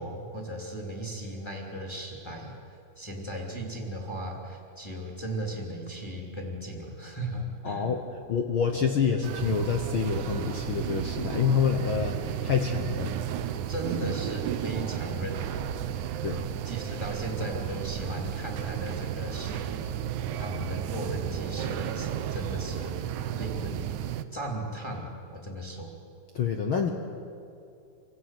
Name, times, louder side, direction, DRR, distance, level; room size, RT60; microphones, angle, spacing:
voice 1, 0.0-7.9 13.7-16.2 16.6-19.9 20.4-23.9 24.3-26.0, right 1 dB, 10° left, 0 dB, 2.8 m, -37 dB
voice 2, 7.6-8.0 8.3-13.5 16.2-16.5 26.3-26.9, left 6 dB, 65° left, 4 dB, 1.3 m, -27 dB
sound 1, 9.2-24.2, right 10 dB, 70° right, 2.1 m, -33 dB
26.5 x 15.5 x 9.4 m, 2.5 s
omnidirectional pair, 4.0 m